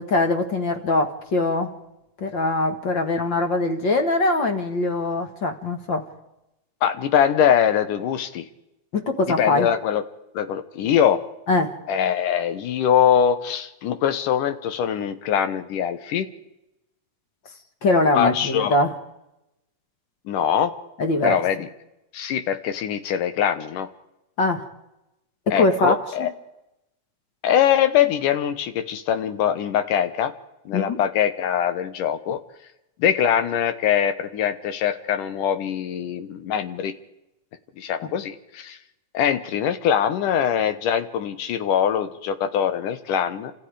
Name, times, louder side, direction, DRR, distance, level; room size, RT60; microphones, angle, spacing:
voice 1, 0.0-1.8 2.2-6.0 8.9-9.7 11.5-11.7 17.8-19.0 21.0-21.4 24.4-24.7 25.5-26.3 30.7-31.0, left 2 dB, 45° left, 6 dB, 2.0 m, -22 dB
voice 2, 6.8-8.5 9.4-10.0 10.3-11.2 11.9-16.3 18.1-18.8 20.3-20.7 21.2-21.7 22.1-23.9 25.5-26.3 27.4-30.3 30.7-32.4 33.0-36.9 37.8-38.8 39.1-43.5, left 9 dB, 80° left, 10 dB, 2.8 m, -22 dB
29.0 x 26.5 x 5.0 m, 0.92 s
omnidirectional pair, 3.6 m